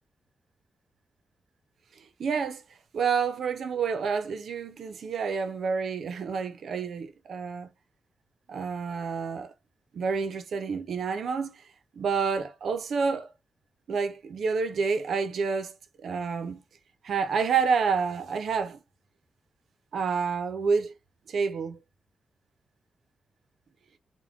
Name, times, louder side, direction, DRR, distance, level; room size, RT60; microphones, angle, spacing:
voice 1, 2.2-2.6 2.9-7.7 8.5-9.5 9.9-11.6 12.0-13.3 13.9-15.7 16.0-16.6 17.0-18.8 19.9-20.9 21.3-21.8, right 5 dB, 70° right, 0.6 m, -28 dB
3.5 x 2.1 x 3.5 m
cardioid pair, 110°, 0 cm